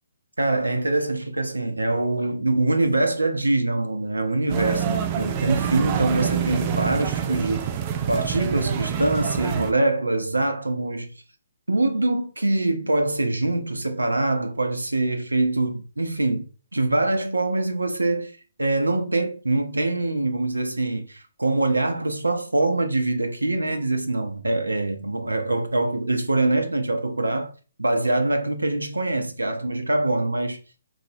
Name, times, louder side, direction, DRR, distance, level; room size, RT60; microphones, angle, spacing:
voice 1, 0.4-7.7 8.1-11.1 11.7-18.3 18.6-27.5 27.8-30.6, right 2 dB, 80° right, 0.5 m, -24 dB
sound 1, 4.5-9.7, right 9 dB, 30° right, 0.4 m, -26 dB
3.9 x 3.2 x 2.7 m
figure-of-eight pair, 135°, 0 cm